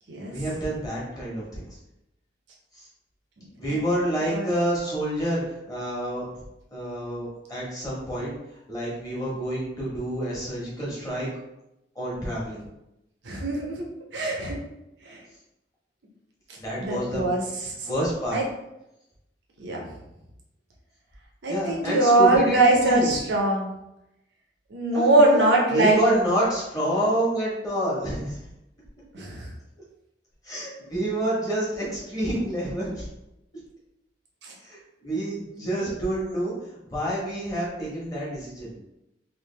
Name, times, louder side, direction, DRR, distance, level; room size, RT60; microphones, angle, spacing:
voice 1, 0.3-1.6 2.7-2.8 3.6-6.2 6.7-8.3 8.7-11.4 11.9-12.6 16.6-17.3 17.8-18.4 21.5-23.1 24.8-25.5 25.7-28.4 30.4-33.1 34.6-36.5 36.8-38.7, right 1 dB, 20° left, -6 dB, 1.2 m, -28 dB
voice 2, 13.3-13.8 14.1-14.6 15.0-15.2 16.8-17.4 17.8-17.9 18.3-18.4 19.6-19.8 21.4-23.7 24.7-26.0 29.1-29.5, right 2 dB, 75° right, -1 dB, 0.6 m, -22 dB
3.2 x 2.5 x 3.2 m, 0.88 s
head